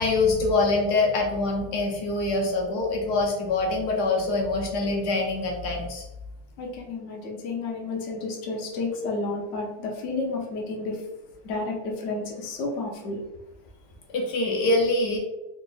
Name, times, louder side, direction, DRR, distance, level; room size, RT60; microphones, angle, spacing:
voice 1, 0.0-6.1 14.1-15.2, left 2 dB, 75° left, -1 dB, 1.3 m, -24 dB
voice 2, 6.6-11.0 11.4-13.2, left 3 dB, 55° left, -1 dB, 1.0 m, -31 dB
3.8 x 2.4 x 3.8 m, 0.94 s
omnidirectional pair, 1.8 m